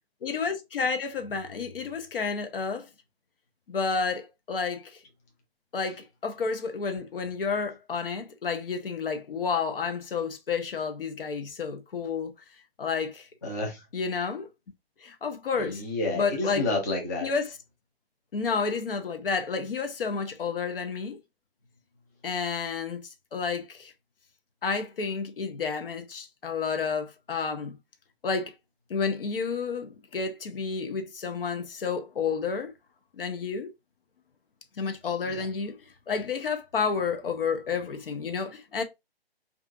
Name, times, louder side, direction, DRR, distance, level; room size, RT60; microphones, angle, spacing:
voice 1, 0.2-2.9 3.7-5.0 5.7-12.3 12.8-13.3 13.9-14.5 15.0-15.8 16.1-16.6 17.2-17.5 18.3-21.2 22.2-23.9 24.6-27.8 28.2-28.5 28.9-32.7 33.2-33.7 34.8-35.8 36.1-38.8, left 5 dB, 65° left, 0.6 m, -30 dB
voice 2, 13.4-13.8 15.6-17.3 35.2-35.5, left 2 dB, 20° left, 0.4 m, -30 dB
2.5 x 2.4 x 2.4 m
figure-of-eight pair, 135°, 31 cm